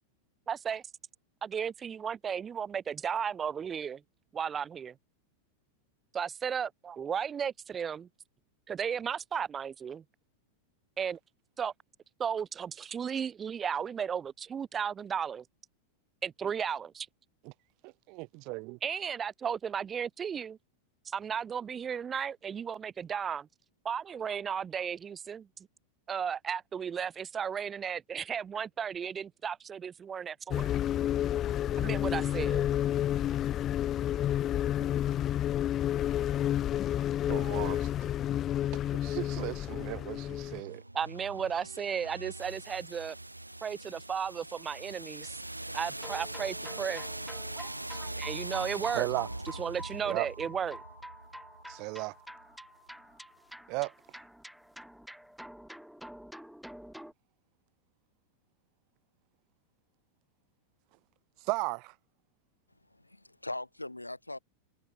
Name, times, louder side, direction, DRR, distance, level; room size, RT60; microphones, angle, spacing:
voice 1, 0.5-0.8 1.4-4.0 4.3-4.9 6.1-8.1 8.7-10.0 11.0-11.2 11.6-11.7 12.2-15.4 16.2-17.1 18.8-20.6 21.1-23.5 23.8-25.5 26.1-30.7 31.8-32.6 40.9-43.1 43.6-45.4 45.7-47.1 47.6-47.7 48.0-49.1 49.5-50.8, right 7 dB, 20° right, 1.1 m, -34 dB
voice 2, 17.8-18.8 37.3-37.9 39.0-40.8 48.9-49.3 50.1-50.3 51.7-52.1 53.7-53.9 61.5-61.9, right 29 dB, 45° right, 0.9 m, -35 dB
sound 1, 30.5-40.6, left 11 dB, 30° left, 0.9 m, -30 dB
sound 2, 40.6-52.4, right 1 dB, 85° right, 1.8 m, -42 dB
sound 3, 46.0-57.1, equal, ahead, 5.4 m, -48 dB
voice 3, 62.7-64.4, left 2 dB, 85° left, 2.0 m, -41 dB
figure-of-eight pair, 90°, 0 cm